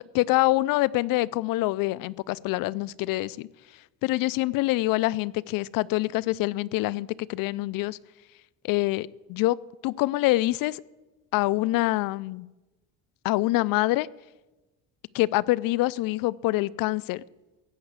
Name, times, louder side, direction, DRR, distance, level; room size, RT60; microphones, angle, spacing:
voice 1, 0.1-3.5 4.0-8.0 8.6-9.6 9.8-10.8 11.3-12.5 13.2-14.1 15.1-17.2, left 19 dB, 70° left, 21 dB, 0.5 m, -25 dB
16.0 x 5.8 x 8.1 m, 1.1 s
cardioid pair, 125°, 35 cm